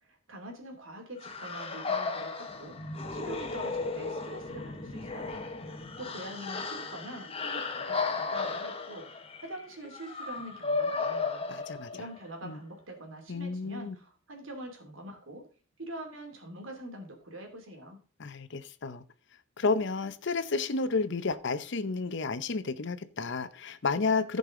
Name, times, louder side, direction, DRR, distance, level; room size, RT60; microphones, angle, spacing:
voice 1, 0.0-2.3 2.6-2.8 3.1-5.4 5.7-11.4 11.9-15.5 15.8-18.0, right 1 dB, 85° right, 3 dB, 2.8 m, -44 dB
sound 1, 1.2-12.3, left 4 dB, 30° left, 1.1 m, -35 dB
voice 2, 11.5-11.9 12.4-12.6 13.3-14.0 18.2-19.0 19.6-24.4, left 4 dB, 65° left, 12 dB, 0.8 m, -31 dB
15.0 x 5.4 x 3.8 m, 0.38 s
head